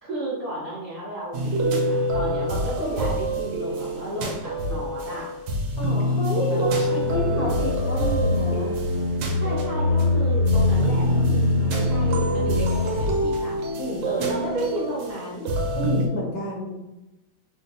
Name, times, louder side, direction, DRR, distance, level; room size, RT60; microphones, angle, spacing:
voice 1, 0.0-5.3 6.3-7.5 9.4-11.4 11.7-13.6 14.0-15.6, right 1 dB, 30° left, -10 dB, 0.3 m, -32 dB
sound 1, 1.3-16.1, equal, 75° right, 1.1 m, -26 dB
voice 2, 5.8-8.8 11.6-12.5 13.8-14.1 15.7-16.8, equal, 75° left, -3 dB, 0.8 m, -31 dB
sound 2, 7.0-13.0, left 2 dB, 40° right, 0.9 m, -24 dB
3.9 x 2.2 x 2.7 m, 0.99 s
omnidirectional pair, 2.3 m